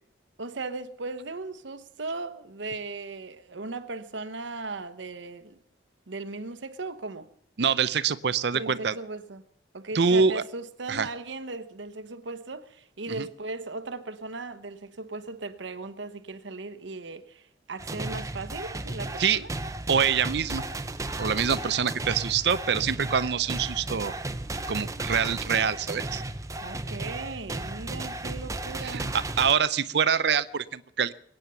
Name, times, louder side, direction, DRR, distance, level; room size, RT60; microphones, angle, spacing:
voice 1, 0.4-5.6 6.1-7.3 8.5-9.4 9.7-19.5 26.6-29.2, right 3 dB, 80° right, 1.1 m, -37 dB
voice 2, 7.6-8.9 9.9-10.4 10.9-11.1 13.2-13.3 19.2-19.4 19.9-20.6 21.2-24.1 24.7-26.2 28.8-31.1, right 6 dB, 65° right, 0.6 m, -25 dB
sound 1, 17.8-29.5, right 2 dB, 15° right, 0.7 m, -34 dB
22.0 x 9.1 x 6.9 m
head